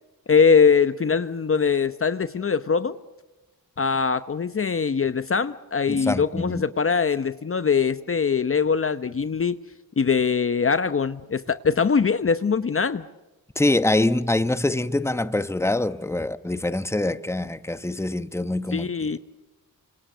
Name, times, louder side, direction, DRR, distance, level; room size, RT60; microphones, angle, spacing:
voice 1, 0.3-3.0 3.8-9.6 10.0-13.0 18.7-19.2, left 5 dB, 35° left, 0.9 m, -22 dB
voice 2, 5.9-6.6 13.6-19.2, left 2 dB, 5° left, 1.2 m, -25 dB
29.0 x 26.5 x 6.7 m
cardioid pair, 85°, 36 cm